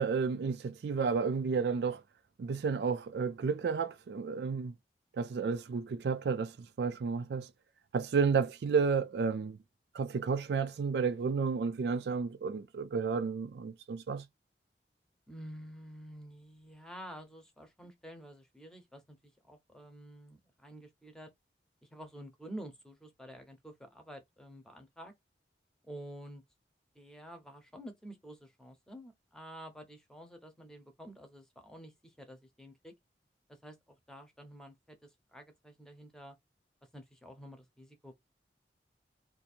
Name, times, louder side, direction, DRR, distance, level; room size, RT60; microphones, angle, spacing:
voice 1, 0.0-2.0 2.4-4.7 5.1-7.5 7.9-9.6 9.9-14.3, right 5 dB, 70° right, 0.3 m, -31 dB
voice 2, 15.3-21.3 21.8-25.1 25.9-26.4 26.9-32.9 33.5-36.4 36.9-38.1, equal, 5° left, 0.8 m, -49 dB
2.7 x 2.6 x 4.2 m
head